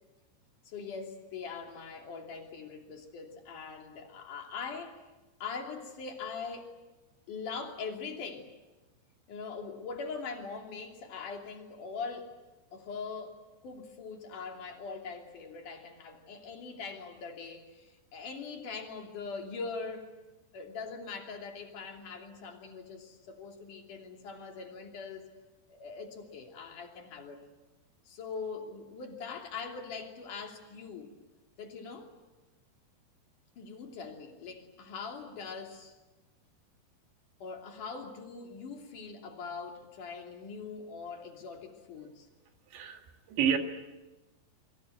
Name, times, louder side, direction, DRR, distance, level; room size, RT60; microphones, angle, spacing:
voice 1, 0.7-5.0 5.4-6.7 7.3-8.5 9.3-12.3 12.7-20.1 20.5-25.3 25.7-27.4 28.1-31.1 31.6-32.1 33.6-36.0 37.4-42.3, left 5 dB, 50° left, 4.1 m, -42 dB
voice 2, 42.7-43.6, right 8 dB, 75° right, 4.5 m, -30 dB
28.0 x 24.0 x 8.0 m
omnidirectional pair, 5.1 m